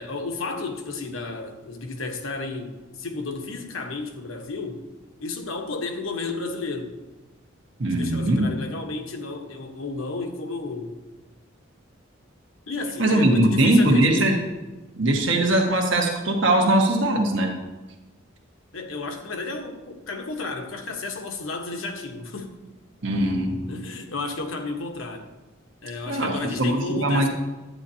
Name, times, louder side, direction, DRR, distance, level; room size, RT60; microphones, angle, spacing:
voice 1, 0.0-4.8 5.2-6.9 7.9-11.0 12.7-14.3 18.7-22.5 23.7-25.3 25.8-27.3, left 3 dB, 80° left, 1.1 m, -32 dB
voice 2, 7.8-8.5 13.0-14.4 15.0-17.5 23.0-23.7 26.1-27.3, right 1 dB, 65° right, 1.5 m, -21 dB
11.5 x 8.9 x 2.8 m
head